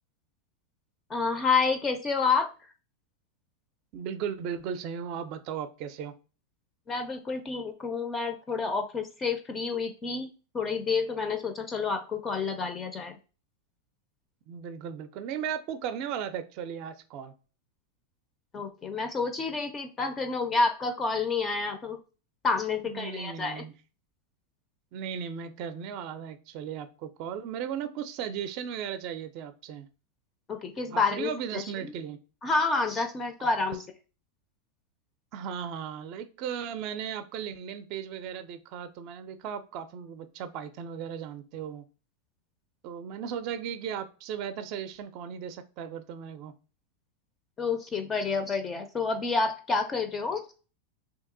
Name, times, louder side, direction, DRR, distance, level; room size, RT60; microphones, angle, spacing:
voice 1, 1.1-2.5 6.9-10.3 10.5-13.2 18.5-22.0 22.4-23.6 30.5-31.9 32.4-33.8 47.6-50.4, left 4 dB, 20° left, 7 dB, 0.4 m, -29 dB
voice 2, 3.9-6.1 14.5-17.3 22.8-23.7 24.9-29.9 30.9-32.2 35.3-41.8 42.8-46.5, right 8 dB, 45° right, 11 dB, 0.4 m, -36 dB
2.8 x 2.6 x 3.7 m, 0.35 s
supercardioid pair, 130°, 0 cm